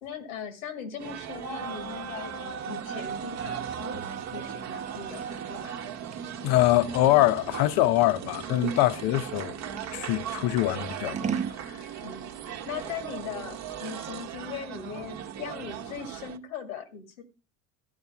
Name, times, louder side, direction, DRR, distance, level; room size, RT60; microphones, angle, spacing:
voice 1, 0.0-4.1 4.3-5.8 12.0-12.3 12.7-17.2, left 7 dB, 75° left, 2.1 m, -39 dB
sound 1, 1.0-16.4, right 7 dB, 40° right, 1.0 m, -37 dB
Scissors, 3.8-9.9 10.5-11.6, right 7 dB, 20° right, 0.4 m, -38 dB
voice 2, 6.4-9.6 9.9-11.4, left 16 dB, 55° left, 0.8 m, -24 dB
13.0 x 4.4 x 6.9 m
hypercardioid pair, 70°, 41 cm